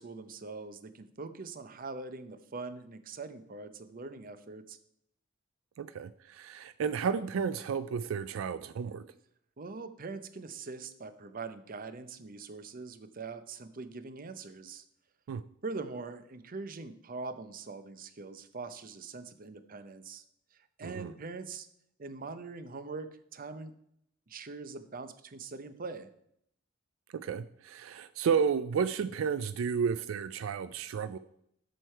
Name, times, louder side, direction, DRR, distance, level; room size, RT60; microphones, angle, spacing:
voice 1, 0.0-4.8 9.6-14.8 15.6-20.2 20.8-21.7 22.0-23.7 24.3-26.1, right 4 dB, 45° right, 12 dB, 0.7 m, -42 dB
voice 2, 5.8-9.0 15.3-15.4 20.8-21.1 27.1-31.2, right 6 dB, 80° right, 13 dB, 0.3 m, -32 dB
7.8 x 6.5 x 4.4 m, 0.72 s
head